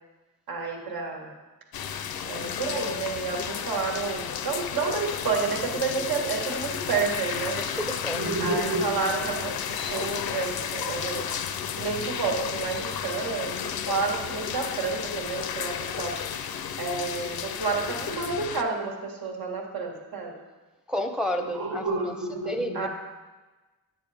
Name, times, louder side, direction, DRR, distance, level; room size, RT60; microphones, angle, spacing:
voice 1, 0.5-1.3 2.3-7.6 8.1-11.4 11.8-16.2 16.8-20.4 21.4-22.9, right 4 dB, 90° right, 0 dB, 1.7 m, -30 dB
sound 1, 1.7-18.6, left 8 dB, 90° left, 0.6 m, -33 dB
voice 2, 7.5-8.2 20.9-21.8 22.5-22.9, equal, ahead, 6 dB, 0.5 m, -30 dB
10.0 x 8.8 x 3.4 m, 1.2 s
wide cardioid pair, 155°, 35 cm